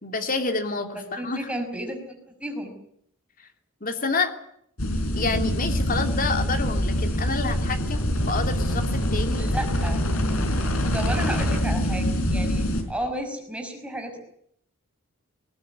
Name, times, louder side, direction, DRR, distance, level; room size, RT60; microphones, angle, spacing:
voice 1, 0.0-1.5 3.4-3.5 3.8-4.3 5.2-9.5, left 4 dB, 40° left, 6 dB, 3.0 m, -28 dB
voice 2, 0.9-2.7 9.4-10.0 10.9-14.2, right 1 dB, 5° right, 4 dB, 5.6 m, -33 dB
sound 1, 4.8-12.8, equal, 80° left, 4.8 m, -24 dB
20.5 x 19.5 x 9.8 m, 0.71 s
head